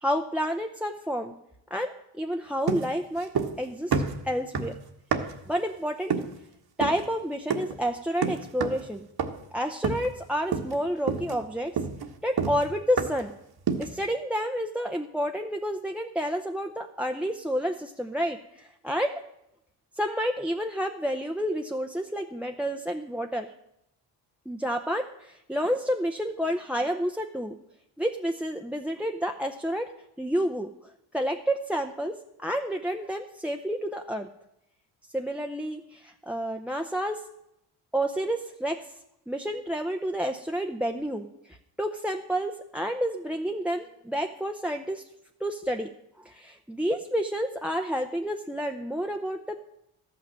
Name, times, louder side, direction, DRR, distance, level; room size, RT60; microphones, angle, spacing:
voice 1, 0.0-1.3 1.7-3.3 3.6-4.7 5.5-6.1 6.8-9.1 9.5-11.8 12.2-13.3 13.8-19.2 20.0-23.5 24.5-27.5 28.0-29.9 30.2-34.3 35.1-37.2 37.9-38.9 39.3-45.0 45.4-45.9 46.2-49.7, equal, 5° right, 4 dB, 0.7 m, -30 dB
sound 1, 2.7-3.6 3.9-5.5 6.1-6.4 6.8-7.1 7.5-7.8 8.2-8.9 9.2-9.5 9.8-10.2 10.5-10.8 11.1-13.3 13.7-14.0, right 6 dB, 50° right, 1.5 m, -29 dB
13.0 x 6.1 x 7.6 m, 0.80 s
supercardioid pair, 70°, 49 cm